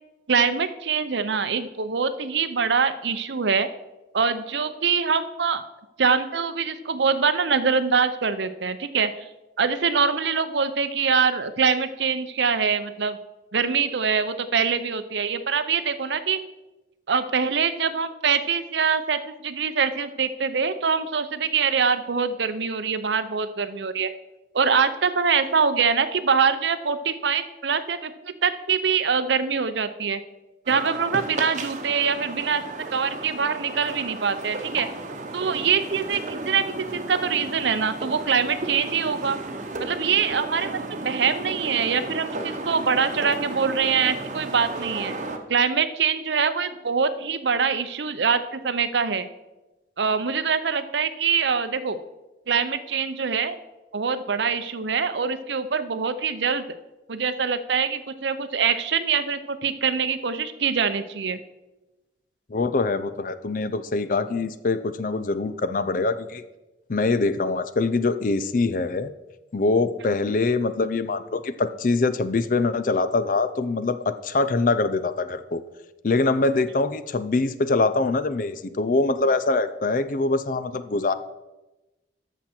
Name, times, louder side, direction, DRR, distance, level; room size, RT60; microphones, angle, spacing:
voice 1, 0.3-3.7 4.1-5.6 6.0-9.1 9.6-13.2 13.5-16.4 17.1-24.1 24.5-30.2 30.7-32.6 32.9-34.9 35.3-39.4 39.8-40.7 41.0-45.1 45.5-49.3 50.0-52.0 52.5-53.6 53.9-56.6 57.1-61.4, right 6 dB, 75° right, 12 dB, 0.7 m, -24 dB
sound 1, 30.7-45.4, right 2 dB, 40° right, 1.0 m, -34 dB
voice 2, 62.5-66.4 66.9-69.1 69.5-75.6 76.0-81.1, left 3 dB, 45° left, 13 dB, 0.5 m, -24 dB
13.5 x 6.0 x 4.4 m, 1.0 s
head